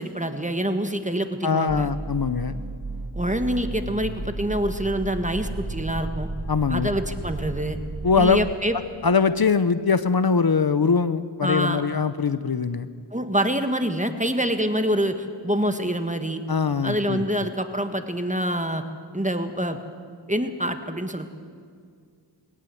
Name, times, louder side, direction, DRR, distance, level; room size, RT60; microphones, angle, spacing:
voice 1, 0.0-1.9 3.1-6.3 6.7-7.8 8.1-8.7 11.4-11.8 13.1-16.4 16.8-18.8 19.1-19.8 20.3-21.3, equal, 15° right, 7 dB, 1.6 m, -26 dB
voice 2, 1.4-2.5 6.5-6.9 8.0-8.4 9.0-12.9 16.5-17.2, left 5 dB, 55° left, 13 dB, 0.8 m, -22 dB
sound 1, 1.7-8.5, right 2 dB, 55° right, 1.7 m, -33 dB
21.0 x 18.5 x 7.8 m, 2.1 s
wide cardioid pair, 40°, 43 cm